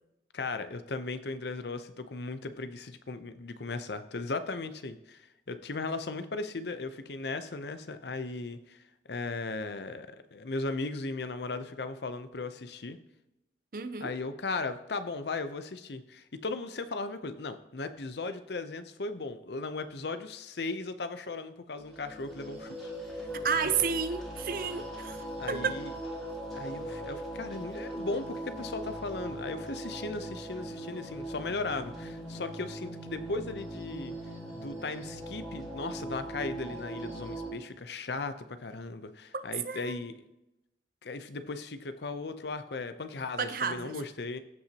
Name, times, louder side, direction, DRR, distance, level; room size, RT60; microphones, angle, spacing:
voice 1, 0.3-13.0 14.0-23.3 23.6-23.7 25.4-25.9 26.5-34.2 34.5-40.1 41.0-44.4, left 3 dB, 75° left, 10 dB, 0.7 m, -37 dB
voice 2, 13.7-14.1 23.4-25.8 39.3-40.0 43.4-44.0, right 6 dB, 50° right, 10 dB, 0.6 m, -32 dB
sound 1, 21.8-37.5, right 1 dB, ahead, 2.2 m, -40 dB
15.5 x 5.9 x 2.9 m, 0.90 s
head